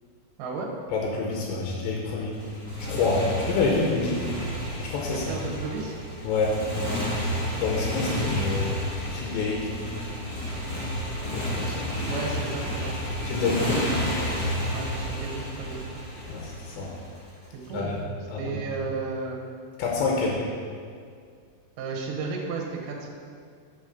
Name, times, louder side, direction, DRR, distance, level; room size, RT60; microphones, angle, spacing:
voice 1, 0.4-0.7 5.1-5.9 8.1-8.2 12.0-12.9 13.4-14.1 14.7-15.8 17.5-18.0 18.3-19.4 21.8-23.1, right 4 dB, 70° right, -1 dB, 2.1 m, -33 dB
voice 2, 0.9-2.3 2.8-4.2 4.8-5.4 6.2-6.6 7.6-8.8 9.1-9.7 11.3-11.9 13.2-14.0 16.3-16.9 17.7-17.9 18.3-18.6 19.8-20.4, left 4 dB, 80° left, -2 dB, 3.1 m, -27 dB
Motorcycle, 2.3-17.5, equal, 65° left, 0.9 m, -31 dB
7.4 x 5.2 x 5.2 m, 2.1 s
omnidirectional pair, 5.2 m